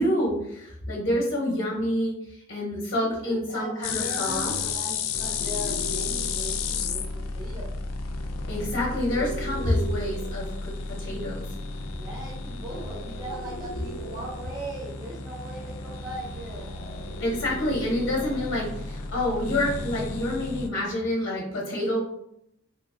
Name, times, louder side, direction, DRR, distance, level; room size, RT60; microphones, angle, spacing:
voice 1, 0.0-4.5 8.5-11.5 17.2-22.0, left 1 dB, 50° left, -3 dB, 0.7 m, -28 dB
voice 2, 2.9-7.7 11.9-16.7, right 1 dB, 20° right, -5 dB, 0.5 m, -39 dB
sound 1, 3.8-20.7, left 4 dB, 90° left, 0.3 m, -33 dB
3.1 x 2.5 x 2.3 m, 0.77 s
head